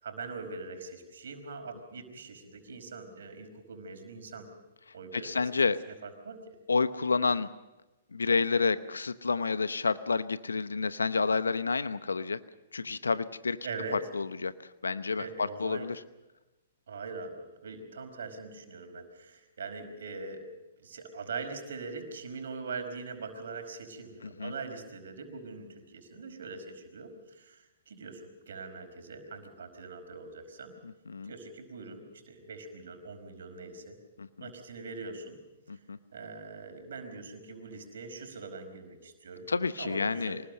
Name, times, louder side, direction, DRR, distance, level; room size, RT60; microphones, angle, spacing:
voice 1, 0.0-4.5 4.9-5.4 6.0-6.4 13.6-14.1 15.2-15.9 16.9-20.5 20.8-30.7 31.3-34.0 34.4-35.4 36.1-39.5 39.8-40.4, right 4 dB, 70° right, 5 dB, 4.9 m, -42 dB
voice 2, 5.1-5.8 6.7-7.5 8.1-12.4 12.7-13.6 14.1-14.5 14.8-16.0 24.2-24.5 31.1-31.3 34.2-34.3 35.7-36.0 39.5-40.4, left 4 dB, 90° left, 14 dB, 0.9 m, -29 dB
25.0 x 20.0 x 6.6 m, 1.0 s
hypercardioid pair, 125°, 0 cm